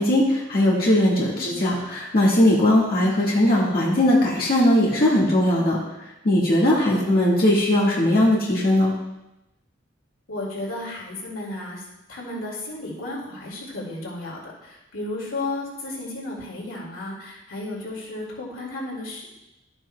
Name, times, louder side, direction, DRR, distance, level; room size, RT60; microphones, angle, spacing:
voice 1, 0.0-5.8 6.2-8.9, left 1 dB, 50° left, -5 dB, 1.7 m, -19 dB
voice 2, 10.3-19.3, left 2 dB, 85° left, -2 dB, 2.3 m, -33 dB
11.5 x 8.8 x 2.3 m, 0.94 s
head